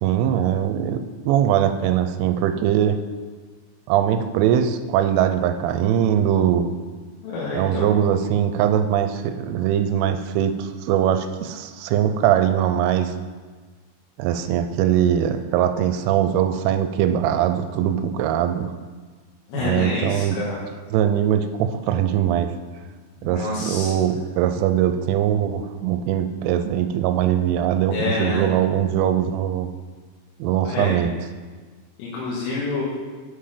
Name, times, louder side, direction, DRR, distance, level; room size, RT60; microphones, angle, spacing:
voice 1, 0.0-3.0 3.9-6.7 7.5-13.1 14.2-18.7 19.6-20.4 20.9-22.5 23.2-29.7 30.4-31.1, right 10 dB, 85° right, 8 dB, 3.0 m, -21 dB
voice 2, 7.2-7.9 19.5-20.6 23.2-23.9 27.9-28.5 30.7-31.0 32.0-32.8, left 3 dB, 85° left, -6 dB, 3.8 m, -27 dB
8.4 x 5.7 x 5.0 m, 1.5 s
omnidirectional pair, 5.7 m